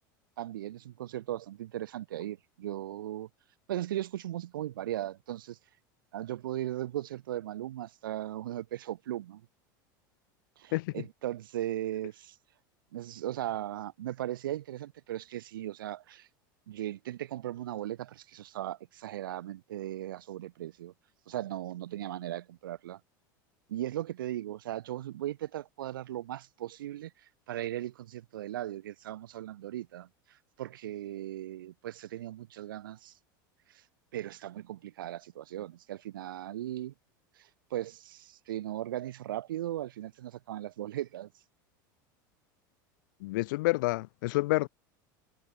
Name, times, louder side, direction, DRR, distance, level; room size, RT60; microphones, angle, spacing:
voice 1, 0.4-3.3 3.7-5.6 6.1-9.4 10.6-12.4 12.9-16.3 16.7-20.9 21.3-23.0 23.7-33.1 33.7-33.8 34.1-36.9 37.4-41.3, right 13 dB, 85° right, 1.8 m, -37 dB
voice 2, 10.7-11.0 43.2-44.7, left 21 dB, 75° left, 0.8 m, -29 dB
hypercardioid pair, 100°, 11 cm